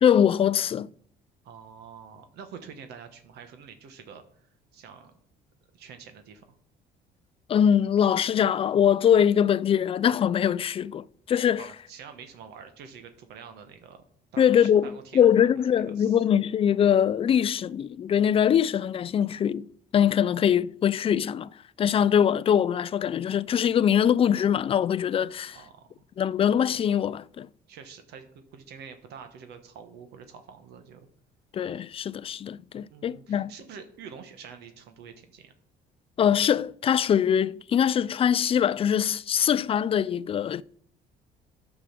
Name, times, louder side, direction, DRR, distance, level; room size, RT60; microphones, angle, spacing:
voice 1, 0.0-0.9 7.5-11.7 14.4-21.5 21.8-25.6 26.2-27.5 31.5-33.5 36.2-40.6, left 9 dB, 35° left, 0.3 m, -23 dB
voice 2, 1.4-5.1 5.7-6.6 11.6-14.0 14.3-16.2 25.5-26.0 27.7-31.1 32.9-35.5, right 6 dB, 75° right, 1.2 m, -46 dB
9.8 x 6.2 x 6.0 m
cardioid pair, 110°, 17 cm